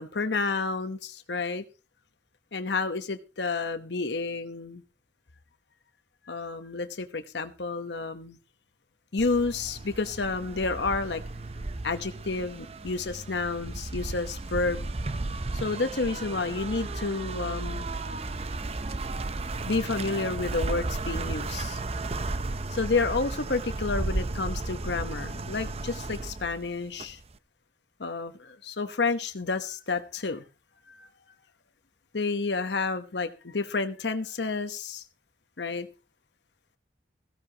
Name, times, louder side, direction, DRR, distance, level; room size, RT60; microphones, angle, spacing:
voice 1, 0.0-1.6 2.5-4.8 6.3-8.4 9.1-11.2 11.8-14.9 15.5-17.9 19.7-21.8 22.7-27.2 28.0-30.4 30.9-31.1 32.1-35.0 35.6-35.9, left 3 dB, 80° left, 8 dB, 1.0 m, -30 dB
sound 1, 9.2-27.4, right 2 dB, 35° right, 0.6 m, -34 dB
16.0 x 15.5 x 2.9 m, 0.30 s
head